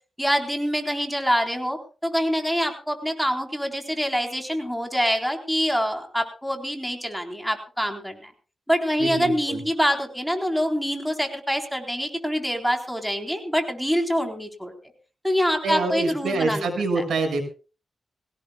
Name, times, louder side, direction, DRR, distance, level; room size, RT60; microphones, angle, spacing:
voice 1, 0.2-8.3 8.7-14.7 15.2-16.7 17.0-17.1, equal, ahead, 4 dB, 3.8 m, -25 dB
voice 2, 9.0-9.6 15.6-17.4, right 3 dB, 80° right, 5 dB, 6.1 m, -26 dB
23.0 x 17.5 x 2.3 m, 0.35 s
cardioid pair, 90°, 0 cm